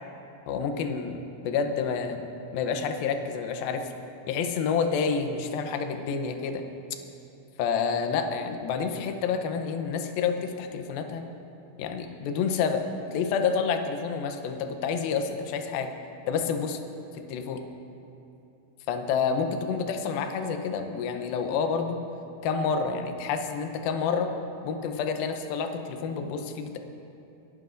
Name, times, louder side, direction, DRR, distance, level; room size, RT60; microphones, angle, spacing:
voice 1, 0.5-2.2 2.5-3.9 4.3-6.6 7.6-11.3 11.8-12.9 13.1-15.9 16.3-16.8 17.3-17.6 18.9-22.0 22.4-24.3 24.6-26.8, left 6 dB, 75° left, 6 dB, 2.3 m, -28 dB
28.0 x 12.5 x 2.6 m, 2.9 s
omnidirectional pair, 4.9 m